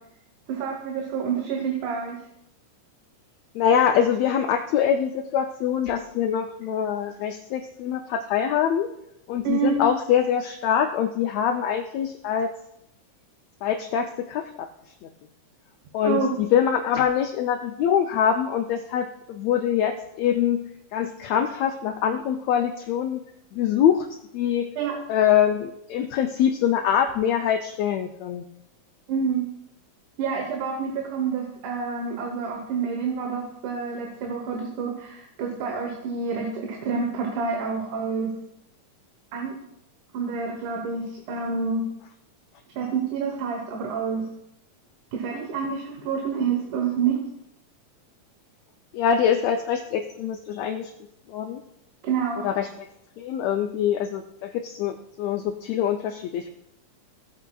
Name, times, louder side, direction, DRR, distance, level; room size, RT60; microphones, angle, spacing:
voice 1, 0.5-2.2 9.4-9.8 16.0-16.4 24.8-24.9 29.1-29.4 30.2-38.3 39.3-39.5 40.1-41.8 42.8-44.3 45.1-47.2 52.0-52.5, right 6 dB, 75° right, 2 dB, 2.5 m, -28 dB
voice 2, 3.5-8.9 9.3-12.5 13.6-14.7 15.0-15.1 15.9-20.6 20.9-23.2 23.5-24.1 24.3-24.7 25.1-28.4 48.9-50.9 51.3-51.6 52.4-52.7 53.2-56.5, left 8 dB, 85° left, 5 dB, 1.5 m, -24 dB
16.0 x 8.3 x 2.3 m, 0.78 s
omnidirectional pair, 3.6 m